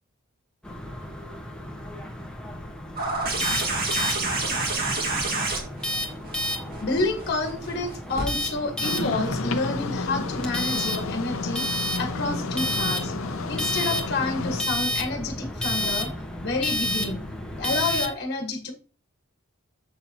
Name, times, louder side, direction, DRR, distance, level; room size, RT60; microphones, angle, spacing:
sound 1, 0.6-18.1, left 1 dB, 5° left, 1.2 m, -31 dB
sound 2, 3.0-8.3 9.6-9.7, right 3 dB, 45° right, 2.0 m, -28 dB
voice 1, 6.8-13.1 13.5-16.1 16.4-17.2 17.5-18.7, left 3 dB, 50° left, 4 dB, 1.5 m, -29 dB
sound 3, 8.8-14.6, left 3 dB, 75° left, 0.8 m, -31 dB
7.4 x 6.7 x 2.9 m, 0.35 s
head